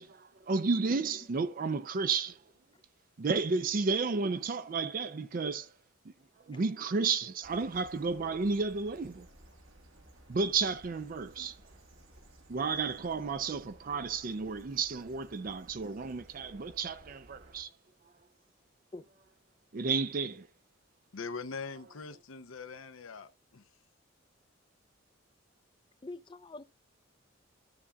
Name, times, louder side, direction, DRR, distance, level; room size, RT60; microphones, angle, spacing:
voice 1, 0.0-2.4 3.2-5.7 6.0-6.1 6.4-9.3 10.3-11.6 12.5-17.7 19.7-20.5, right 4 dB, 45° right, 0.4 m, -32 dB
sound 1, 7.4-17.6, right 1 dB, 75° right, 1.7 m, -57 dB
voice 2, 21.1-23.7, left 4 dB, 80° left, 0.7 m, -42 dB
voice 3, 26.0-26.6, left 2 dB, 25° left, 0.4 m, -45 dB
14.0 x 6.9 x 2.3 m
head